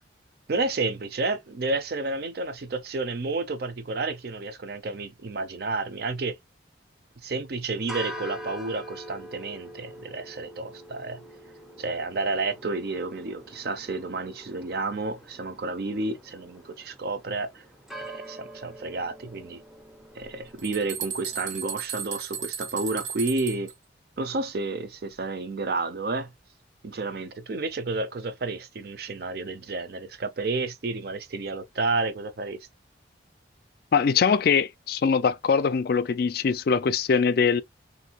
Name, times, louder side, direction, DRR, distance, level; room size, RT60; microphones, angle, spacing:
voice 1, 0.5-6.4 7.2-11.2 11.8-17.6 18.0-19.6 20.2-23.7 24.2-26.3 26.8-32.6, right 3 dB, 55° right, 0.5 m, -31 dB
sound 1, 7.8-21.6, equal, ahead, 0.5 m, -44 dB
sound 2, 20.2-20.3 20.6-23.7, right 8 dB, 85° right, 1.0 m, -35 dB
voice 2, 33.9-37.6, left 6 dB, 55° left, 0.3 m, -22 dB
3.1 x 2.6 x 2.8 m
head